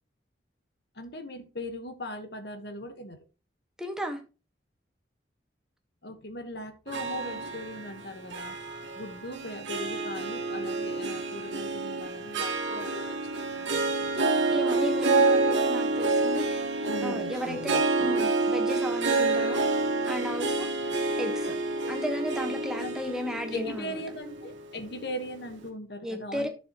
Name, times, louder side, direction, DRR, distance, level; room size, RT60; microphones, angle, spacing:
voice 1, 0.9-3.2 6.0-8.6 8.9-14.3 16.8-18.1 22.8-23.1 23.5-26.5, left 1 dB, 60° left, 1.4 m, -39 dB
voice 2, 3.8-4.2 14.5-16.6 17.0-19.7 20.1-20.9 21.2-21.5 21.9-24.0 26.0-26.5, equal, 5° right, 1.4 m, -34 dB
Harp, 6.9-25.3, right 3 dB, 90° right, 1.6 m, -28 dB
10.5 x 7.0 x 3.0 m
head